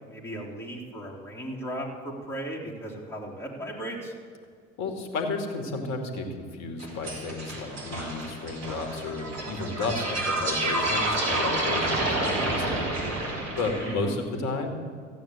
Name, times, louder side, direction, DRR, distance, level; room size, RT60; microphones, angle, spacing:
voice 1, 0.1-4.1 13.7-14.2, right 1 dB, 5° left, -3 dB, 3.5 m, -36 dB
voice 2, 4.8-12.8 13.6-14.7, left 3 dB, 45° left, 5 dB, 2.3 m, -32 dB
sound 1, 6.8-13.9, right 2 dB, 40° right, 4.5 m, -29 dB
14.5 x 9.1 x 8.7 m, 2.1 s
figure-of-eight pair, 65°, 38 cm